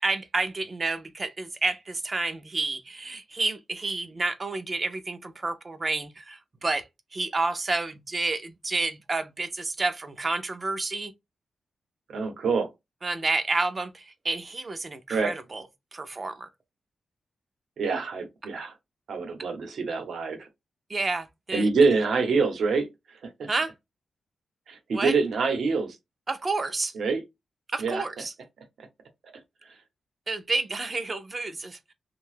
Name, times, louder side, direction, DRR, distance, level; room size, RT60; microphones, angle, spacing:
voice 1, 0.0-6.8 7.1-11.1 13.0-15.6 15.9-16.5 20.9-21.7 23.5-23.7 24.9-25.1 26.3-26.9 27.7-28.3 30.3-31.9, right 3 dB, 25° right, 0.4 m, -30 dB
voice 2, 12.1-12.7 15.1-15.3 17.8-18.7 19.1-20.5 21.5-22.9 24.7-26.0 26.9-27.2 27.8-28.0, right 4 dB, 70° right, 0.8 m, -25 dB
2.7 x 2.2 x 3.2 m
wide cardioid pair, 175°, 0 cm